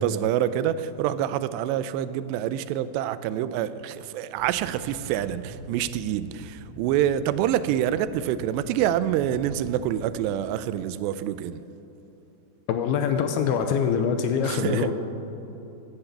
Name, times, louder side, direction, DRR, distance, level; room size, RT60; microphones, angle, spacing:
voice 1, 0.0-11.6 14.4-14.9, right 11 dB, 85° right, 14 dB, 2.7 m, -26 dB
sound 1, 4.4-10.4, equal, 55° left, 3.5 m, -44 dB
voice 2, 12.7-14.9, left 7 dB, 80° left, 7 dB, 2.5 m, -24 dB
15.5 x 10.0 x 6.8 m, 2.8 s
omnidirectional pair, 4.9 m